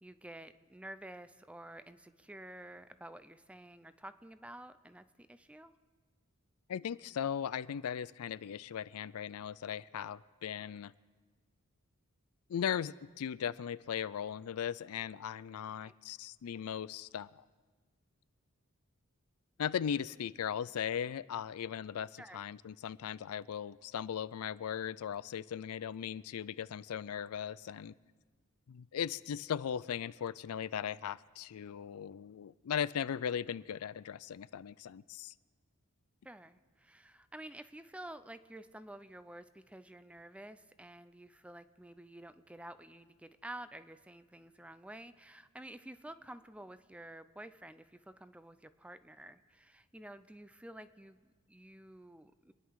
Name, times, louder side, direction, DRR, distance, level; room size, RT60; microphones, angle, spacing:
voice 1, 0.0-5.7 15.8-15.9 22.2-22.4 36.2-52.5, right 1 dB, 5° right, 12 dB, 0.5 m, -50 dB
voice 2, 6.7-10.9 12.5-17.4 19.6-27.9 28.7-35.3, left 8 dB, 85° left, 18 dB, 0.4 m, -38 dB
27.5 x 10.5 x 4.7 m, 1.4 s
head